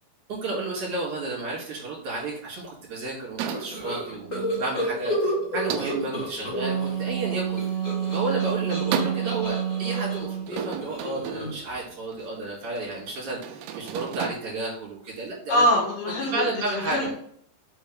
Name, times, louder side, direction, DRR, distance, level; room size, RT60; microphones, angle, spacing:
voice 1, 0.3-7.6 8.1-15.6 16.3-17.1, right 2 dB, 40° right, -6 dB, 3.1 m, -32 dB
sound 1, 3.4-14.3, right 8 dB, 80° right, 2.4 m, -36 dB
sound 2, 3.5-6.9 7.2-11.7, left 1 dB, 45° left, 0.8 m, -32 dB
Wind instrument woodwind instrument, 6.3-10.5, right 9 dB, 25° left, 2.3 m, -29 dB
voice 2, 15.5-17.1, equal, 75° left, -4 dB, 3.4 m, -24 dB
6.1 x 4.3 x 3.6 m, 0.65 s
omnidirectional pair, 5.0 m